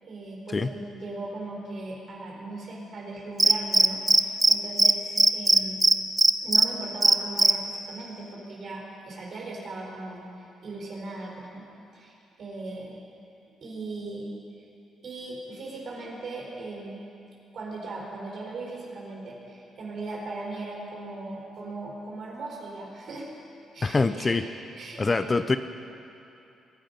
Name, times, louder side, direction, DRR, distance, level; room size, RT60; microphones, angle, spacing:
voice 1, 0.0-5.8 6.4-11.7 11.9-13.0 13.6-14.3 15.0-17.1 17.5-23.3 23.7-24.5 24.8-25.4, right 2 dB, 55° right, -2 dB, 4.4 m, -38 dB
Cricket, 3.4-4.5 4.8-4.9 5.2-6.6 7.0-7.5, right 2 dB, 20° right, 0.6 m, -17 dB
voice 2, 23.8-24.5 25.0-25.6, left 3 dB, 30° left, 11 dB, 0.6 m, -24 dB
22.0 x 10.0 x 5.3 m, 2.7 s
cardioid pair, 90°, 0 cm